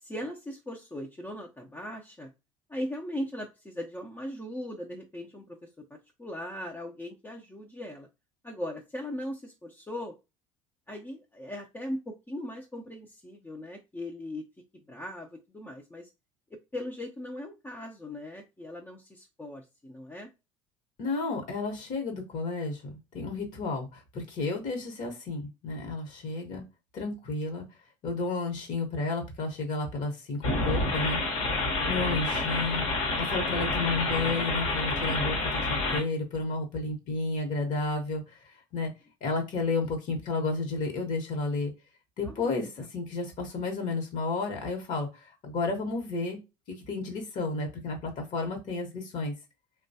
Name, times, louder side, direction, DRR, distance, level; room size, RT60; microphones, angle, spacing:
voice 1, 0.0-2.3 2.7-8.1 8.4-10.1 10.9-14.5 14.9-16.1 16.7-20.3 42.2-42.9, left 1 dB, 15° left, 0 dB, 0.6 m, -39 dB
voice 2, 21.0-26.6 26.9-27.6 28.0-31.2 31.9-32.9 33.2-38.9 39.2-41.7 42.2-46.4 46.7-49.3, left 3 dB, 50° left, 3 dB, 1.1 m, -32 dB
sound 1, 30.4-36.0, left 2 dB, 75° left, 1.1 m, -28 dB
3.0 x 2.3 x 2.7 m, 0.27 s
hypercardioid pair, 65°, 16 cm